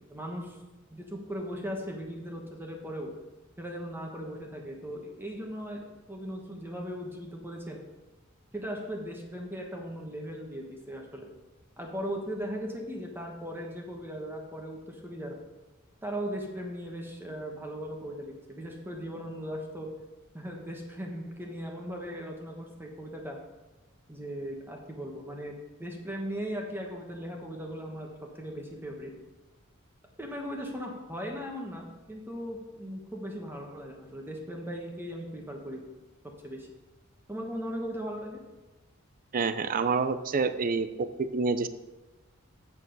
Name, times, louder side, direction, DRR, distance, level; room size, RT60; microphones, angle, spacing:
voice 1, 0.1-0.6 0.9-3.1 3.6-7.8 8.5-11.3 11.8-15.4 16.0-19.9 20.3-23.4 24.1-28.1 28.3-29.1 30.2-35.8 36.4-36.7 37.3-38.4, equal, 10° right, 1 dB, 1.3 m, -38 dB
voice 2, 39.3-41.7, right 4 dB, 40° right, 12 dB, 0.5 m, -28 dB
8.3 x 6.9 x 5.4 m, 1.1 s
head